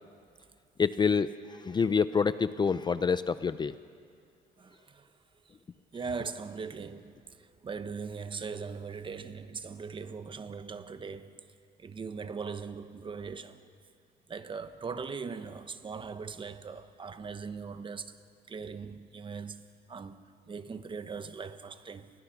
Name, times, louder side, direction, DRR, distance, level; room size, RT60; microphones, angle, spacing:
voice 1, 0.8-3.7, left 5 dB, 25° left, 0.6 m, -27 dB
voice 2, 4.6-5.1 5.9-11.4 11.8-13.6 14.3-18.2 18.5-22.1, right 5 dB, 30° right, 1.2 m, -40 dB
30.0 x 22.0 x 5.9 m
cardioid pair, 110°, 17 cm